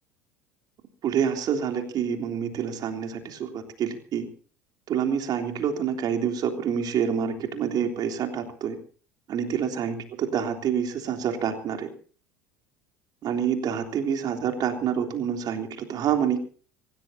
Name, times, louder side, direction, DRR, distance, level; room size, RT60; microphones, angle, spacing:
voice 1, 1.0-4.2 4.9-8.7 9.3-11.9 13.2-16.4, right 8 dB, 50° right, 4 dB, 3.4 m, -27 dB
26.0 x 17.0 x 2.8 m, 0.42 s
hypercardioid pair, 70°, 9 cm